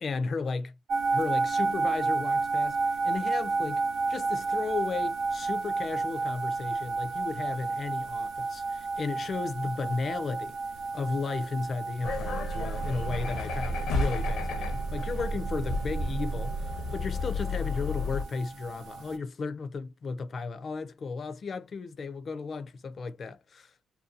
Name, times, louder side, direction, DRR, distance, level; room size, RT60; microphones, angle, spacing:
voice 1, 0.0-0.7 1.1-2.8 3.0-3.8 4.1-10.5 10.9-23.7, left 4 dB, 45° left, 0.5 m, -34 dB
sound 1, 0.9-19.2, right 3 dB, 70° right, 0.6 m, -32 dB
sound 2, 12.0-18.2, left 1 dB, 75° left, 0.8 m, -31 dB
2.7 x 2.2 x 2.6 m
cardioid pair, 90°, 0 cm